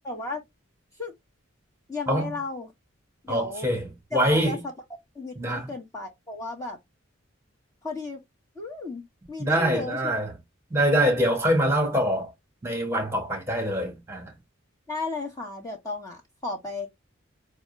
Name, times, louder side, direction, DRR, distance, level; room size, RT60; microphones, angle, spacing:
voice 1, 0.0-0.4 1.0-1.1 1.9-2.7 3.2-3.7 4.1-4.6 5.1-6.8 7.8-8.2 8.5-10.1 14.9-16.9, left 3 dB, 15° left, 1.5 m, -34 dB
voice 2, 2.1-2.4 3.3-4.6 5.4-5.7 9.4-10.3 10.7-12.3 12.6-14.3, equal, 15° right, 1.7 m, -24 dB
6.2 x 2.4 x 3.3 m
head